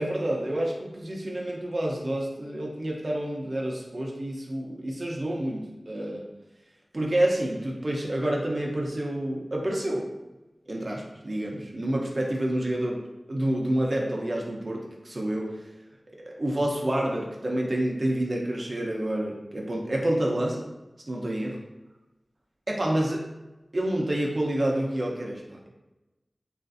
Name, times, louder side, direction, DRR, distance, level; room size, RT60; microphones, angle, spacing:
voice 1, 0.0-6.2 6.9-10.1 10.7-13.0 13.3-15.7 16.1-20.7 21.1-21.6 22.7-23.2 23.7-25.7, right 1 dB, 60° right, -1 dB, 0.6 m, -28 dB
3.0 x 2.5 x 2.5 m, 1.0 s
wide cardioid pair, 45°, 0 cm